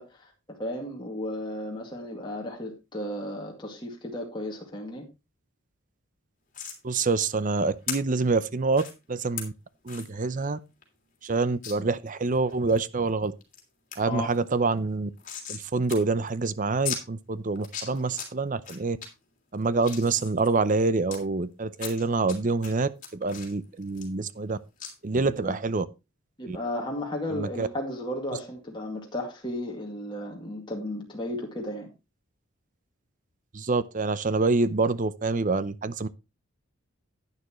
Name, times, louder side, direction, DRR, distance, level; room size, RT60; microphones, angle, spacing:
voice 1, 0.0-5.0 14.0-14.3 25.2-25.5 26.4-31.9, left 1 dB, 20° left, 2.2 m, -34 dB
sound 1, 6.5-6.8 7.9-8.0 8.7-8.9 9.4-9.5 9.9-10.1 10.5-10.6 10.8-10.9 11.6-11.7 12.3-12.8 13.2-13.6 13.9-14.0 14.3-15.6 15.9-16.0 16.3-16.4 16.8-17.0 17.5-18.3 18.6-19.1 19.5-21.2 21.8-22.3 22.6-24.5 24.8-24.9, left 7 dB, 40° left, 3.0 m, -37 dB
voice 2, 6.8-8.8 9.1-9.5 9.8-10.6 11.2-13.3 14.0-15.1 15.5-19.0 19.5-24.6 25.0-25.9 26.5-26.6 27.3-27.7 33.5-36.1, right 3 dB, 40° right, 0.6 m, -26 dB
11.0 x 9.8 x 3.0 m
head